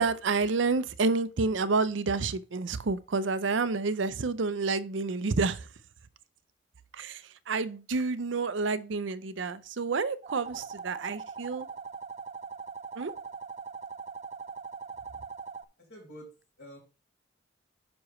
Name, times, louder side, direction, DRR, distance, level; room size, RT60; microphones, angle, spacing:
voice 1, 0.0-5.7 6.9-11.7 13.0-13.1, right 4 dB, 80° right, 0.6 m, -29 dB
Flying Car - Hover, 10.2-15.6, right 5 dB, 35° right, 0.4 m, -41 dB
voice 2, 15.9-16.3 16.6-16.8, equal, 55° left, 4.4 m, -47 dB
9.6 x 6.1 x 3.1 m
head